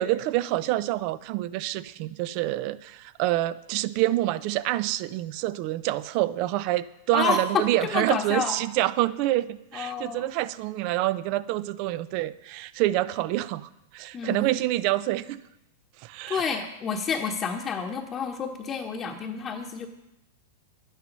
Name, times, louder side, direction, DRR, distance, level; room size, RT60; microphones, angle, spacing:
voice 1, 0.0-15.4 16.0-16.4, right 16 dB, 50° right, 16 dB, 0.6 m, -27 dB
voice 2, 7.1-8.6 9.7-10.3 14.1-14.6 16.3-19.9, left 5 dB, 25° left, -2 dB, 1.1 m, -29 dB
11.0 x 10.0 x 5.4 m, 0.88 s
hypercardioid pair, 125°, 0 cm